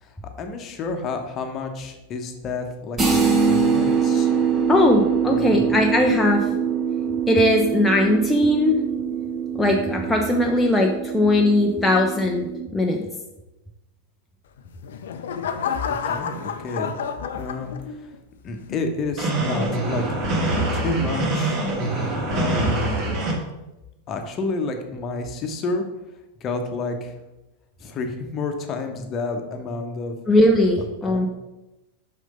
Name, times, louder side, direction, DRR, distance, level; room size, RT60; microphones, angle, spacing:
voice 1, 0.0-4.3 5.3-5.7 16.0-16.9 17.3-18.1 18.4-20.2 20.7-21.6 21.9-22.0 22.3-23.0 24.1-25.8 26.4-27.1 27.8-30.1 30.8-31.3, left 3 dB, 30° left, 5 dB, 1.1 m, -30 dB
sound 1, 3.0-12.6, right 6 dB, 20° right, 1.3 m, -23 dB
voice 2, 4.7-6.5 7.3-8.8 9.6-12.5 12.7-13.0 30.3-31.3, left 1 dB, 10° left, 0 dB, 0.7 m, -19 dB
sound 2, 14.6-18.2 18.7-19.0, left 7 dB, 60° left, 0.6 m, -30 dB
sound 3, 19.2-23.3, right 2 dB, 35° right, 1.7 m, -24 dB
6.3 x 5.5 x 5.1 m, 1.0 s
figure-of-eight pair, 90°, 0 cm